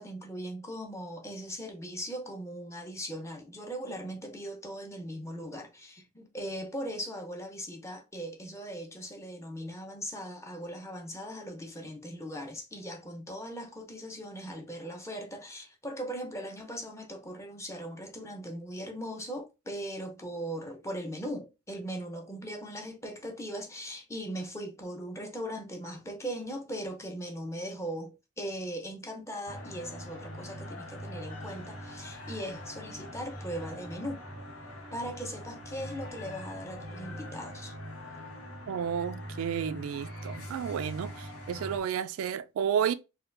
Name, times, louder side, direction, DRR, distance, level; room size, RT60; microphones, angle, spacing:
voice 1, 0.0-34.2 34.9-37.7, equal, 15° left, 0.6 m, -39 dB
sound 1, 29.5-41.8, equal, 90° left, 1.0 m, -42 dB
voice 2, 38.7-42.9, right 8 dB, 85° right, 0.3 m, -31 dB
4.3 x 2.2 x 2.5 m
head